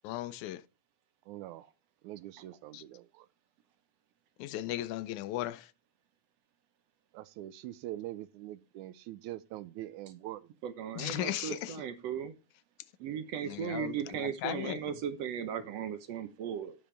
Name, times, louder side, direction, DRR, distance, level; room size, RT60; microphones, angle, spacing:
voice 1, 0.0-0.6 2.7-2.8 4.4-5.7 11.0-11.8 13.4-14.8, left 14 dB, 80° left, 2.0 m, -37 dB
voice 2, 1.3-1.6 2.0-3.3 7.1-10.5 11.4-11.5, right 14 dB, 85° right, 2.0 m, -43 dB
voice 3, 10.6-12.3 13.0-16.8, right 8 dB, 65° right, 1.8 m, -37 dB
8.8 x 8.6 x 3.3 m
omnidirectional pair, 3.5 m